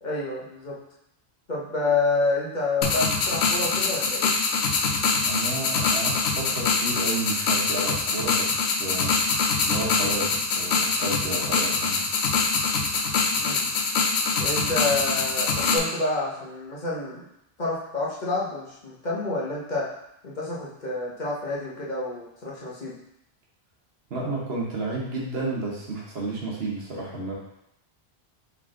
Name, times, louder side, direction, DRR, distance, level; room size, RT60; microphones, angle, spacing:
voice 1, 0.0-0.8 1.5-4.3 13.4-13.6 14.4-17.2 17.6-19.9 20.2-22.9, left 3 dB, 45° left, -6 dB, 1.0 m, -28 dB
sound 1, 2.8-15.8, left 4 dB, 80° left, 0.9 m, -24 dB
voice 2, 5.2-9.1 9.6-12.0 24.1-27.3, right 2 dB, 65° right, -3 dB, 1.2 m, -32 dB
3.7 x 3.5 x 3.7 m, 0.79 s
omnidirectional pair, 1.1 m